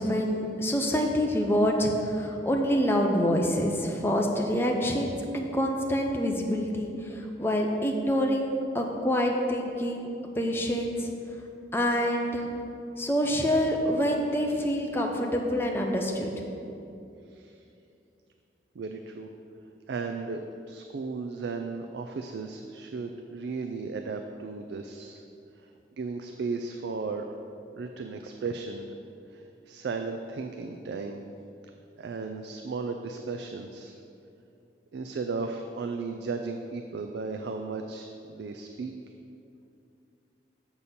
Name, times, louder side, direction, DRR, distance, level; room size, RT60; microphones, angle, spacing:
voice 1, 0.0-10.1 10.4-11.1 11.7-12.4 13.0-16.3, equal, 10° left, 1 dB, 0.6 m, -26 dB
voice 2, 18.8-19.3 19.9-20.4 20.7-25.2 25.6-25.7 26.0-27.3 27.7-28.9 29.3-31.2 32.0-34.0 34.9-38.9, right 4 dB, 75° right, 5 dB, 0.4 m, -35 dB
7.1 x 4.2 x 6.7 m, 2.7 s
head